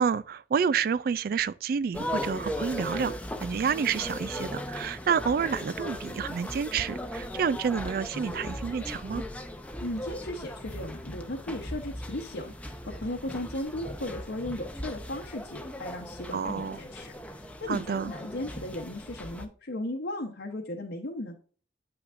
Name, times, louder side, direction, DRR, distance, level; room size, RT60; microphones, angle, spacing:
voice 1, 0.0-3.1 3.4-9.2 16.3-16.8 17.7-18.1, right 6 dB, 55° right, 0.3 m, -29 dB
sound 1, 1.9-19.5, left 1 dB, 10° left, 0.6 m, -38 dB
voice 2, 9.8-21.3, left 1 dB, 70° left, 1.0 m, -36 dB
7.9 x 5.8 x 2.5 m
head